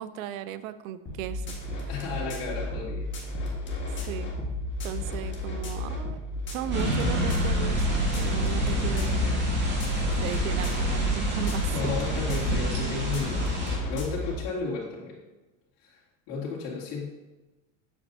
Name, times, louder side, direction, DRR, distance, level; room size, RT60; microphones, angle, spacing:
voice 1, 0.0-1.9 3.8-4.3 4.8-6.2 6.5-9.3 10.2-11.9, right 10 dB, 85° right, 14 dB, 0.6 m, -36 dB
sound 1, 1.1-14.4, left 1 dB, 30° left, 1.6 m, -33 dB
voice 2, 1.9-3.1 3.4-3.5 11.7-15.1 15.8-16.0 16.3-17.1, left 4 dB, 60° left, -7 dB, 2.7 m, -34 dB
sound 2, 6.7-13.8, equal, 25° right, 2.1 m, -27 dB
7.8 x 7.3 x 2.7 m, 1.1 s
supercardioid pair, 130°, 40 cm